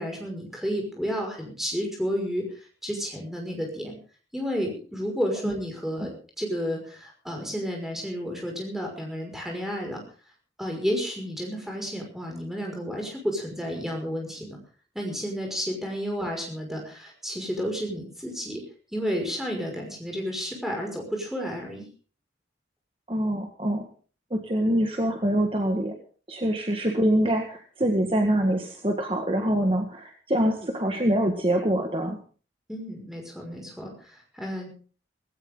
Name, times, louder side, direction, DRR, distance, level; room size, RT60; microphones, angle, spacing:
voice 1, 0.0-4.0 4.3-10.0 10.6-14.6 14.9-18.6 18.9-21.9 32.7-34.7, equal, ahead, 1 dB, 5.7 m, -31 dB
voice 2, 23.1-23.9 24.3-25.9 26.3-32.2, right 1 dB, 30° right, 4 dB, 1.7 m, -25 dB
18.0 x 17.0 x 3.9 m, 0.40 s
head